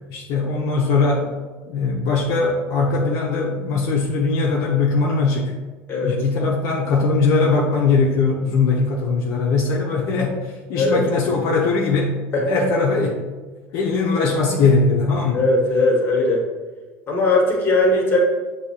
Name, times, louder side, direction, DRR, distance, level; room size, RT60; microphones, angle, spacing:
voice 1, 0.1-1.3 1.7-5.5 6.0-12.2 12.5-13.2 13.7-15.5, left 4 dB, 65° left, -1 dB, 0.6 m, -20 dB
voice 2, 5.9-6.2 10.7-11.0 12.3-12.4 15.3-16.4 17.1-18.2, left 2 dB, 35° left, 0 dB, 1.3 m, -19 dB
6.4 x 2.7 x 2.8 m, 1.3 s
supercardioid pair, 115°, 7 cm